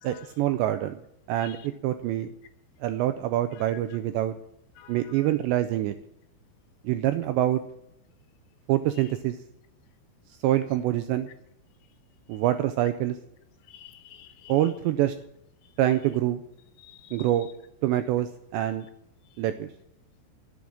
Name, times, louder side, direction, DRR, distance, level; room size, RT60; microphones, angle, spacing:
voice 1, 0.0-1.0 1.3-2.3 2.8-4.3 4.9-5.9 6.8-7.6 8.7-9.4 10.4-11.3 12.3-13.2 14.5-15.1 15.8-16.4 17.1-17.5 17.8-18.9 19.4-19.7, right 13 dB, 85° right, 2.5 m, -25 dB
voice 2, 3.6-4.0 4.8-5.3 9.0-9.1 13.7-14.7 16.8-17.3, left 12 dB, 75° left, 3.1 m, -50 dB
13.0 x 7.8 x 8.6 m
omnidirectional pair, 5.7 m